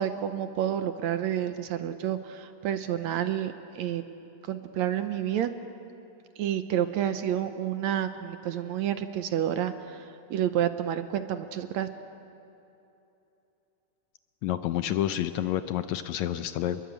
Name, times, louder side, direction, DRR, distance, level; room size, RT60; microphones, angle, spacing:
voice 1, 0.0-4.0 4.4-5.5 6.4-11.9, right 10 dB, 70° right, 9 dB, 2.0 m, -29 dB
voice 2, 14.4-16.8, left 12 dB, 75° left, 10 dB, 1.8 m, -29 dB
28.5 x 21.5 x 8.2 m, 2.8 s
omnidirectional pair, 3.6 m